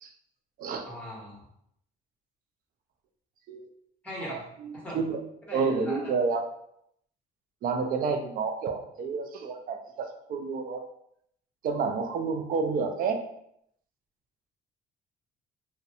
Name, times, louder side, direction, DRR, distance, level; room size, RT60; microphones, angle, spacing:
voice 1, 0.8-1.5 4.0-4.4 4.8-5.0 5.5-6.1, equal, 10° left, -4 dB, 1.1 m, -39 dB
voice 2, 4.3-5.2 5.5-6.5 7.6-10.8 11.6-13.2, right 5 dB, 55° right, 5 dB, 0.4 m, -30 dB
2.4 x 2.1 x 2.8 m, 0.73 s
cardioid pair, 110°, 17 cm